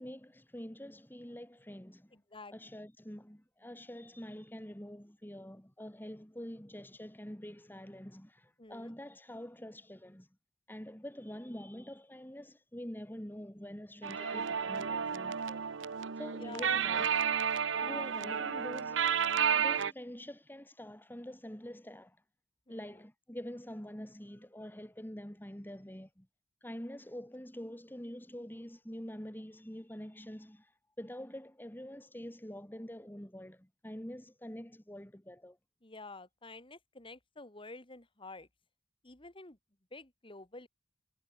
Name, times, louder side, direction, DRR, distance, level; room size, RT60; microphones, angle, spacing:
voice 1, 0.0-2.2 2.5-10.3 10.7-15.6 16.2-17.1 17.8-19.0 19.5-22.2 22.7-26.3 26.6-35.6, equal, 10° left, 2.8 m, -46 dB
voice 2, 2.1-2.5 8.6-8.9 16.4-16.9 17.6-18.7 22.7-23.0 35.8-38.5 39.0-39.6 39.9-40.7, left 3 dB, 25° left, 2.6 m, -50 dB
sound 1, 14.0-19.9, right 7 dB, 80° right, 0.8 m, -32 dB
head